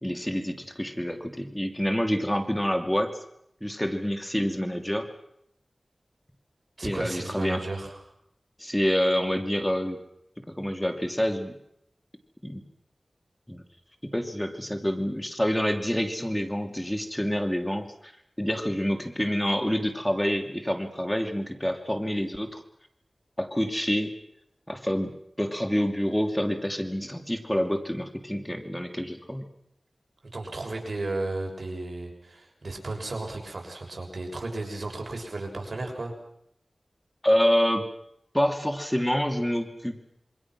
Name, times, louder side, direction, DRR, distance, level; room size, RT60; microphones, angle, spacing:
voice 1, 0.0-3.1 3.6-5.1 6.8-7.6 8.6-10.0 10.5-11.5 12.4-12.6 13.5-13.6 14.1-18.1 18.4-22.6 23.4-24.1 24.7-25.1 25.4-29.5 37.2-37.9 38.3-40.0, equal, 10° left, 5 dB, 2.8 m, -27 dB
voice 2, 6.8-8.0 30.2-36.1, right 2 dB, 70° right, 2 dB, 6.4 m, -34 dB
27.5 x 25.0 x 6.2 m, 0.76 s
wide cardioid pair, 50°, 0 cm